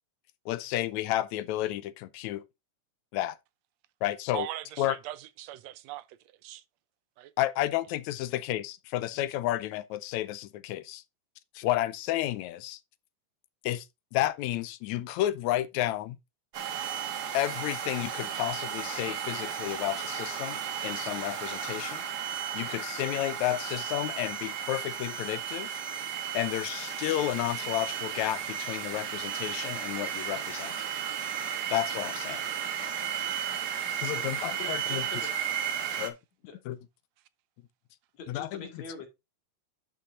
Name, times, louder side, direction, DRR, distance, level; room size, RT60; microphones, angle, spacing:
voice 1, 0.5-2.4 3.1-3.4 4.0-4.5 4.8-5.0 7.4-11.0 11.6-12.8 13.6-13.9 14.1-16.2 17.3-22.0 22.5-25.8 26.3-30.7 31.7-32.4 33.8-35.1 36.0-36.2 36.7-36.8 38.3-38.8, left 14 dB, 85° left, 1.9 m, -31 dB
voice 2, 4.3-6.2 6.4-6.6 7.2-7.3, right 14 dB, 75° right, 1.7 m, -40 dB
sound 1, 16.5-36.1, right 8 dB, 55° right, 1.2 m, -34 dB
voice 3, 34.6-35.3 36.5-36.6 38.1-39.1, left 4 dB, 65° left, 3.3 m, -44 dB
11.5 x 5.9 x 2.5 m
omnidirectional pair, 3.3 m